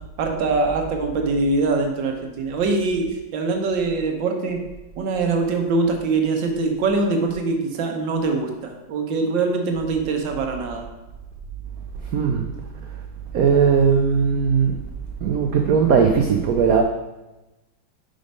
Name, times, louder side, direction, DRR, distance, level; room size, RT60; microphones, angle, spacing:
voice 1, 0.2-4.6 5.0-10.9, right 3 dB, 70° right, 3 dB, 1.5 m, -23 dB
voice 2, 12.1-12.5 13.3-14.8 15.2-16.8, right 6 dB, 85° right, 3 dB, 0.7 m, -18 dB
5.1 x 5.1 x 5.3 m, 1.0 s
omnidirectional pair, 2.2 m